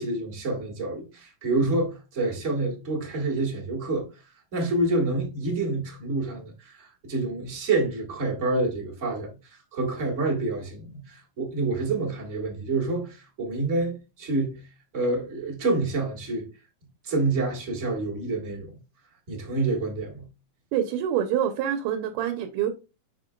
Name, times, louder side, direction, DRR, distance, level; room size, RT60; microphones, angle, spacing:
voice 1, 0.0-4.1 4.5-14.6 14.9-16.5 17.0-18.7 19.3-20.2, right 2 dB, 30° right, 1.4 m, -28 dB
voice 2, 20.7-22.7, right 10 dB, 80° right, 2.3 m, -26 dB
7.5 x 6.0 x 2.3 m
omnidirectional pair, 3.8 m